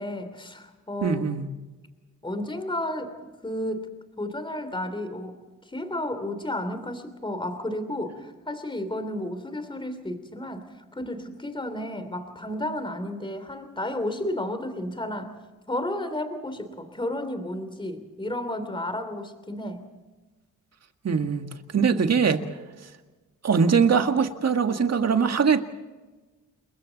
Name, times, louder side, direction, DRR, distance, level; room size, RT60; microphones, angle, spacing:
voice 1, 0.0-1.3 2.2-3.9 4.2-5.4 5.7-10.7 10.9-15.4 15.7-19.8, left 1 dB, 15° left, 9 dB, 3.2 m, -32 dB
voice 2, 1.0-1.5 21.0-22.4 23.4-25.6, right 6 dB, 55° right, 7 dB, 1.8 m, -22 dB
29.5 x 22.0 x 4.1 m, 1.2 s
cardioid pair, 95°, 31 cm